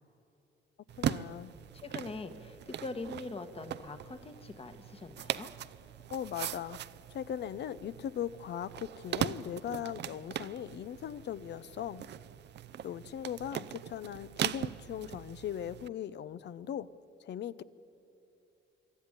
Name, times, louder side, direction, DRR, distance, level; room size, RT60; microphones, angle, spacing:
voice 1, 0.9-1.5 6.1-6.8 7.1-12.0 12.8-16.9 17.2-17.6, left 9 dB, 60° left, 16 dB, 0.7 m, -39 dB
sound 1, 0.9-15.9, right 10 dB, 60° right, 0.6 m, -40 dB
voice 2, 1.7-5.5, left 3 dB, 30° left, 8 dB, 1.4 m, -43 dB
26.0 x 13.0 x 9.8 m, 2.9 s
cardioid pair, 90°, 20 cm